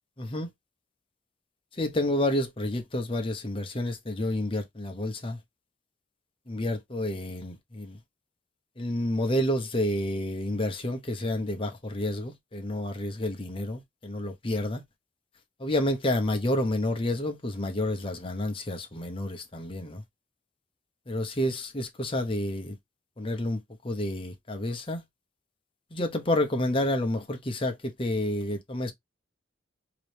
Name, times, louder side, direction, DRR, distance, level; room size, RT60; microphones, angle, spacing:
voice 1, 0.2-0.5 1.8-5.4 6.5-8.0 8.8-14.8 15.6-20.0 21.1-22.8 23.2-25.0 25.9-28.9, left 1 dB, 25° left, 0.8 m, -29 dB
4.1 x 3.0 x 3.2 m
head